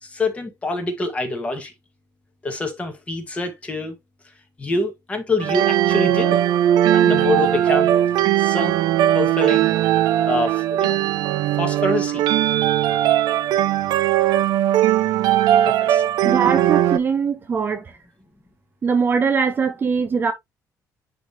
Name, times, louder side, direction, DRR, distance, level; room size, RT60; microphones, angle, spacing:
voice 1, 0.0-1.7 2.4-3.9 4.6-6.4 6.9-7.9 8.4-8.8 9.1-9.7 10.2-11.0 11.6-12.2 15.6-16.0, left 2 dB, 20° left, 1.6 m, -25 dB
sound 1, 5.4-17.0, right 12 dB, 80° right, 0.5 m, -19 dB
voice 2, 16.2-17.8 18.8-20.3, right 6 dB, 30° right, 0.7 m, -21 dB
10.0 x 3.4 x 2.8 m
cardioid pair, 160°, 7 cm